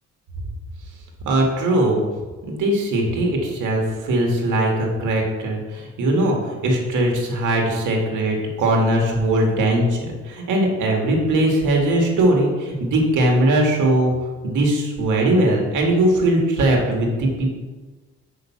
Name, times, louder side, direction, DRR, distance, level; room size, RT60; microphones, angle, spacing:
voice 1, 1.3-2.0 2.4-14.1 14.4-17.5, right 1 dB, 80° right, 1 dB, 1.9 m, -20 dB
6.5 x 5.4 x 5.8 m, 1.3 s
cardioid pair, 90°, 30 cm